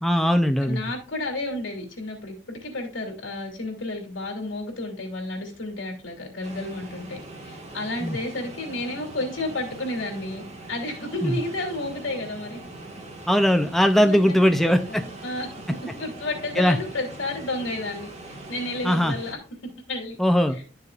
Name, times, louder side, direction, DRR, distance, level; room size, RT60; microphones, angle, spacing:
voice 1, 0.0-0.8 8.0-8.2 11.2-11.4 13.3-15.0 16.6-16.8 18.8-19.2 20.2-20.6, equal, ahead, 6 dB, 0.5 m, -20 dB
voice 2, 0.6-10.4 10.7-12.6 13.9-15.5 15.9-19.4 19.9-20.2 20.5-20.6, left 2 dB, 80° left, 2 dB, 2.9 m, -32 dB
sound 1, 6.4-19.4, right 2 dB, 35° right, 1.7 m, -41 dB
12.0 x 6.7 x 2.4 m, 0.37 s
head